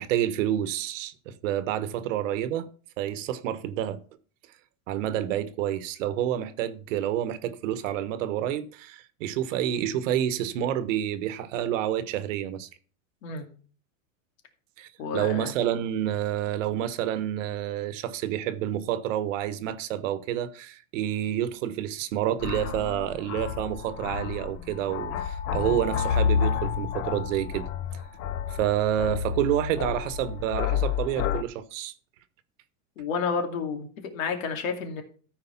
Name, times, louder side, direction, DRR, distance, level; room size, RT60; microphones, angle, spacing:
voice 1, 0.0-2.7 3.0-4.0 4.9-12.7 14.8-27.7 28.5-31.9, right 11 dB, 70° right, 1.2 m, -29 dB
voice 2, 15.0-15.5 33.0-35.0, left 5 dB, 80° left, 2.6 m, -30 dB
sound 1, 22.4-31.4, left 8 dB, 35° left, 0.6 m, -30 dB
13.5 x 4.7 x 5.7 m
supercardioid pair, 140°, 40 cm